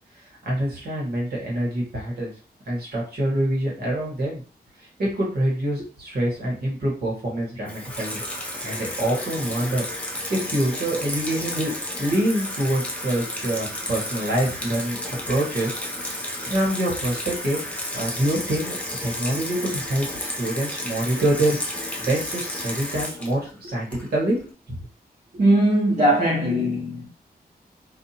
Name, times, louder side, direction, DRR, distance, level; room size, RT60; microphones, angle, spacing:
voice 1, 0.4-2.3 2.7-4.4 5.0-8.2 8.6-9.8 10.3-15.0 15.3-16.1 16.4-17.6 17.9-18.8 19.0-24.4 24.7-24.8, right 1 dB, 70° right, 1.3 m, -25 dB
Water tap faucet / Sink (filling or washing), 7.7-24.4, left 1 dB, 10° left, 0.5 m, -32 dB
voice 2, 25.3-27.1, right 1 dB, 45° right, 0.9 m, -20 dB
2.5 x 2.5 x 2.8 m
wide cardioid pair, 180°, 17 cm